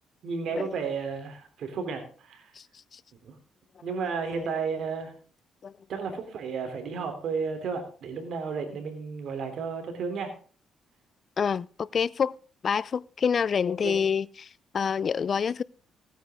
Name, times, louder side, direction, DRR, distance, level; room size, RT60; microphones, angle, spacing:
voice 1, 0.2-2.5 3.2-3.3 3.8-5.1 5.9-10.3 13.8-14.0, right 5 dB, 70° right, 3.4 m, -33 dB
voice 2, 11.4-12.3 12.6-14.5 14.7-15.6, left 6 dB, 45° left, 0.4 m, -27 dB
16.0 x 9.4 x 3.7 m
cardioid pair, 90°, 0 cm